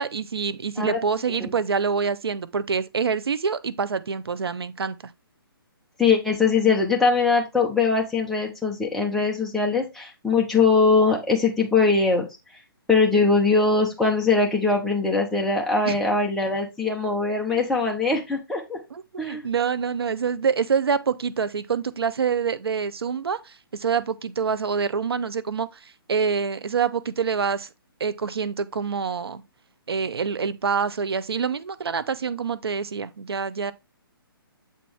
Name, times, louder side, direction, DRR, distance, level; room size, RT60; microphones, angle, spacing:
voice 1, 0.0-5.0 15.9-16.0 17.5-17.6 18.9-27.7 28.0-29.4 29.9-33.7, right 6 dB, 85° right, 0.7 m, -26 dB
voice 2, 6.0-12.3 12.9-18.8 19.2-19.4, left 4 dB, ahead, 1.0 m, -21 dB
7.4 x 4.3 x 3.4 m
hypercardioid pair, 155°, 13 cm